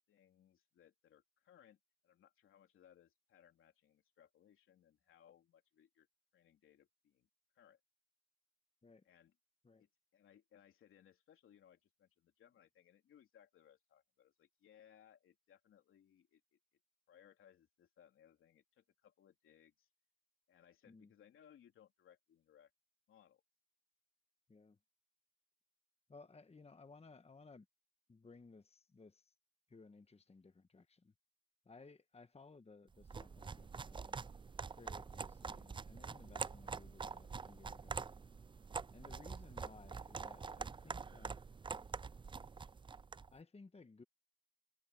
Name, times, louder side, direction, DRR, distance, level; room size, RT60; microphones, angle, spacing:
voice 1, 0.1-6.1 6.3-7.3 7.5-7.8 9.0-9.3 9.8-16.6 17.1-19.9 20.5-22.7 23.1-23.4 39.0-39.2, left 9 dB, 85° left, 3.4 m, -67 dB
voice 2, 26.1-27.7 28.1-29.3 29.7-31.1 31.6-34.3 34.8-38.1 38.9-41.4 43.3-44.0, left 3 dB, 30° left, 1.3 m, -59 dB
sound 1, 33.0-43.3, right 5 dB, 25° right, 0.4 m, -46 dB
cardioid pair, 60°, 21 cm